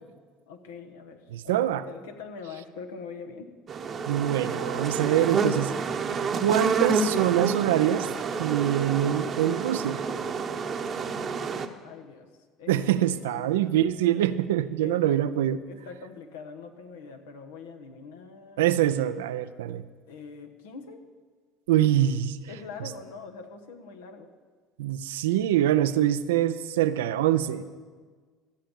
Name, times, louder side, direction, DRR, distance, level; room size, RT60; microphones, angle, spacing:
voice 1, 0.5-3.5 11.8-12.3 12.6-13.6 14.8-15.2 15.7-18.7 20.1-21.0 22.5-24.3, left 5 dB, 80° left, 5 dB, 1.2 m, -43 dB
voice 2, 1.3-1.8 4.1-5.7 6.3-8.1 8.4-10.0 12.7-15.6 18.6-19.8 21.7-22.4 24.8-27.6, right 12 dB, 80° right, 13 dB, 0.5 m, -24 dB
sound 1, 3.7-11.7, right 5 dB, 40° right, 0.9 m, -29 dB
14.5 x 7.5 x 7.1 m, 1.5 s
hypercardioid pair, 70°, 0 cm